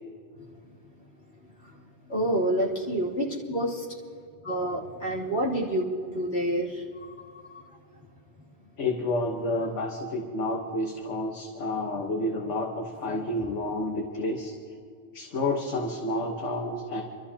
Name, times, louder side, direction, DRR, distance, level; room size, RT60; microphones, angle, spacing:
voice 1, 2.1-3.9 4.4-7.6, right 1 dB, 55° left, -6 dB, 3.4 m, -28 dB
voice 2, 8.8-14.5 15.1-17.0, left 2 dB, 70° left, 1 dB, 1.6 m, -30 dB
29.0 x 13.0 x 2.9 m, 2.4 s
omnidirectional pair, 1.3 m